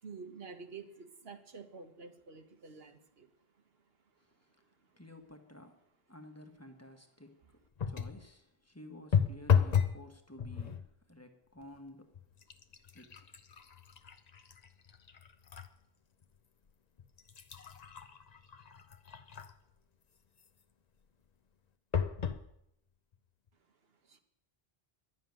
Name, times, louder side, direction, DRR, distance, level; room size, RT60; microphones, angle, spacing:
voice 1, 0.0-3.9 4.3-4.4 4.8-5.0 23.7-24.2, right 5 dB, 75° right, 1.5 m, -50 dB
voice 2, 5.0-5.8 6.1-7.4 7.8-12.1 12.9-13.3, left 1 dB, 15° left, 1.2 m, -53 dB
sound 1, 7.8-8.2 9.1-10.0 10.4-10.9 11.6-11.8 12.1-15.7 16.2-16.3 17.0-19.7 21.9-22.4 23.1-23.2 23.5-23.6, left 7 dB, 45° left, 0.8 m, -33 dB
11.0 x 7.4 x 9.3 m
omnidirectional pair, 1.0 m